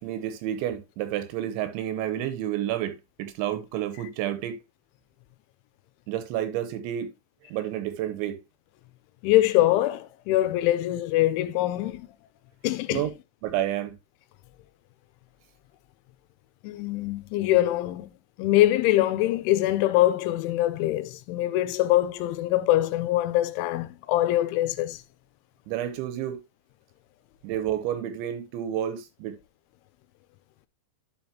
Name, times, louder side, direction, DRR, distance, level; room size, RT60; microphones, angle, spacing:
voice 1, 0.0-4.6 6.1-7.1 7.5-8.4 12.9-13.1 13.4-13.9 25.7-26.4 27.4-29.4, right 11 dB, 80° right, 3.1 m, -30 dB
voice 2, 9.2-12.1 12.6-13.0 16.6-18.1 18.4-25.0, left 15 dB, 90° left, 3.1 m, -23 dB
11.5 x 5.2 x 2.9 m
omnidirectional pair, 5.5 m